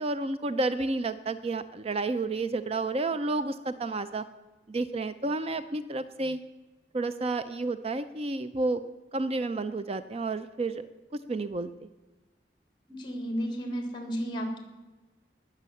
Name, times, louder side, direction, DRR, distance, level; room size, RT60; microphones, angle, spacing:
voice 1, 0.0-4.2 4.7-6.4 6.9-8.8 9.1-11.9, right 2 dB, 35° right, 12 dB, 0.5 m, -31 dB
voice 2, 12.9-14.6, equal, 25° left, 4 dB, 3.4 m, -33 dB
20.0 x 6.7 x 8.4 m, 1.2 s
head